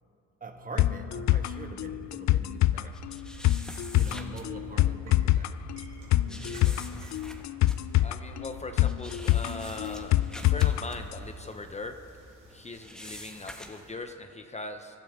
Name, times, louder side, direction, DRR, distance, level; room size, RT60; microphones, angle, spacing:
voice 1, 0.4-3.0 3.9-5.6 6.2-7.1, right 2 dB, 30° right, 5 dB, 1.4 m, -43 dB
sound 1, 0.8-10.8 11.1-11.2, left 15 dB, 65° left, 0.4 m, -26 dB
sound 2, 2.9-4.5 4.9-5.1 6.3-12.2 12.5-14.0, equal, ahead, 1.2 m, -46 dB
sound 3, 4.0-13.9, right 3 dB, 90° right, 4.3 m, -56 dB
voice 2, 8.0-12.0 12.5-15.0, left 2 dB, 20° left, 6 dB, 0.7 m, -40 dB
24.5 x 12.0 x 3.6 m, 2.8 s
cardioid pair, 90°, 30 cm